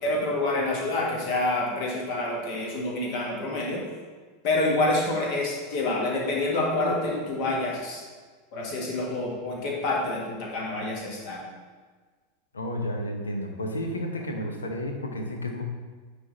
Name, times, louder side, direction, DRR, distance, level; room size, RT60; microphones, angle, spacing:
voice 1, 0.0-3.8 4.4-8.0 8.5-11.5, left 2 dB, 50° left, -2 dB, 1.8 m, -27 dB
voice 2, 12.5-15.6, left 1 dB, 80° left, 4 dB, 0.8 m, -31 dB
9.4 x 3.6 x 4.0 m, 1.4 s
figure-of-eight pair, 85°, 0 cm